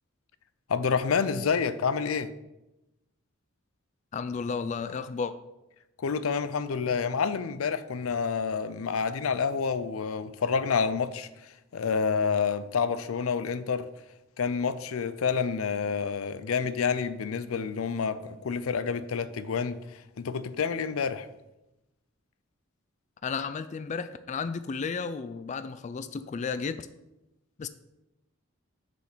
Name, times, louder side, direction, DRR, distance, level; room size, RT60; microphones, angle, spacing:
voice 1, 0.7-2.3 6.0-13.9 14.4-21.3, left 5 dB, 90° left, 0.5 m, -28 dB
voice 2, 4.1-5.3 23.2-26.9 27.6-27.7, left 5 dB, 35° left, 0.3 m, -33 dB
6.7 x 5.2 x 6.6 m
head